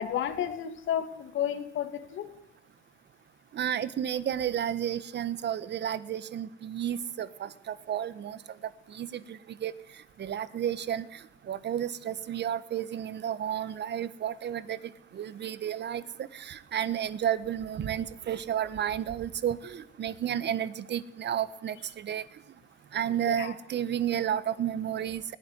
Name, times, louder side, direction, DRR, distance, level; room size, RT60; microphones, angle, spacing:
voice 1, 0.0-2.3 23.3-23.5, left 9 dB, 75° left, 8 dB, 2.8 m, -32 dB
voice 2, 3.5-8.6 8.9-9.7 10.2-22.2 22.9-25.4, right 10 dB, 60° right, 16 dB, 1.4 m, -32 dB
20.0 x 16.5 x 9.7 m, 0.75 s
cardioid pair, 90°, 20 cm